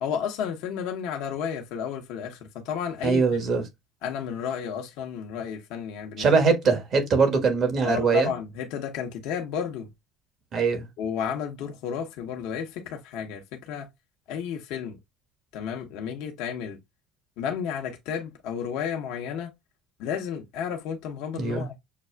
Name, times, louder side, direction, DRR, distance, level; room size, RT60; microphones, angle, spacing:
voice 1, 0.0-3.4 4.0-6.3 7.8-9.9 11.0-13.9 14.3-15.0 15.5-16.8 17.4-19.5 20.0-21.8, left 7 dB, 75° left, 0.7 m, -32 dB
voice 2, 3.0-3.6 6.2-8.3 10.5-10.9 21.3-21.7, right 5 dB, 50° right, 1.4 m, -22 dB
6.6 x 2.3 x 2.2 m
supercardioid pair, 80°, 0 cm